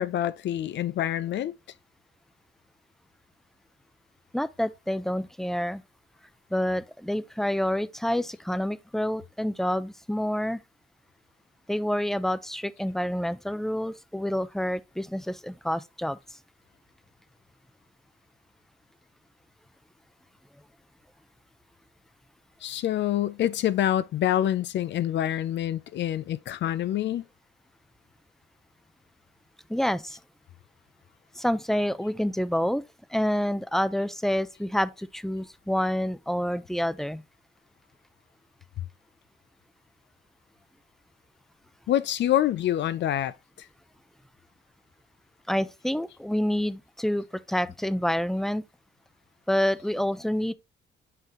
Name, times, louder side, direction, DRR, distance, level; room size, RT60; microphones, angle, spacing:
voice 1, 0.0-1.5 22.6-27.2 41.9-43.3, left 12 dB, 65° left, 0.5 m, -26 dB
voice 2, 4.3-5.8 6.5-10.6 11.7-16.2 29.7-30.2 31.4-32.8 33.1-37.2 45.5-48.6 49.5-50.5, equal, ahead, 0.5 m, -28 dB
5.8 x 5.4 x 3.0 m
cardioid pair, 90°, 20 cm